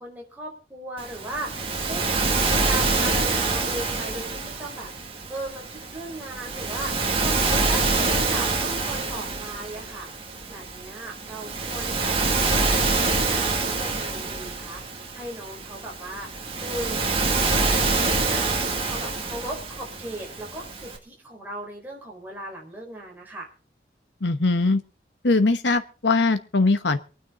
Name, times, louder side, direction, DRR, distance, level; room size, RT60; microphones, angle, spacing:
voice 1, 0.0-12.4 12.7-16.3 16.6-17.3 17.6-23.5, right 1 dB, 10° right, -2 dB, 4.6 m, -37 dB
Waves surf, 1.0-21.0, right 3 dB, 30° right, 2.1 m, -26 dB
voice 2, 24.2-24.8 25.2-27.0, left 3 dB, 75° left, 9 dB, 1.1 m, -21 dB
23.5 x 9.6 x 3.8 m, 0.34 s
head